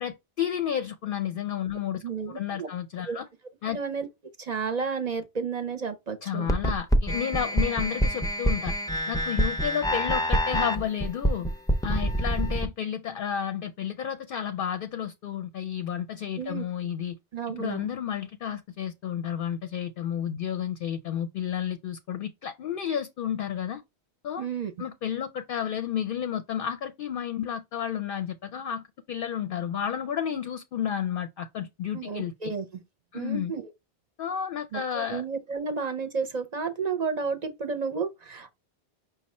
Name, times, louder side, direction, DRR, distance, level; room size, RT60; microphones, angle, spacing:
voice 1, 0.0-3.3 3.6-3.8 6.2-8.7 9.1-11.5 11.8-17.2 17.5-23.8 24.2-24.5 24.8-32.5 33.1-33.5 34.2-35.2, left 9 dB, 60° left, 0.7 m, -31 dB
voice 2, 2.0-2.7 3.1-3.2 3.7-4.1 4.4-6.5 16.4-16.6 17.3-17.9 24.4-24.7 31.9-32.6 33.1-33.7 34.7-38.5, right 5 dB, 45° right, 0.7 m, -32 dB
sound 1, 6.5-12.7, equal, 5° left, 0.4 m, -26 dB
5.3 x 2.3 x 4.2 m
omnidirectional pair, 1.1 m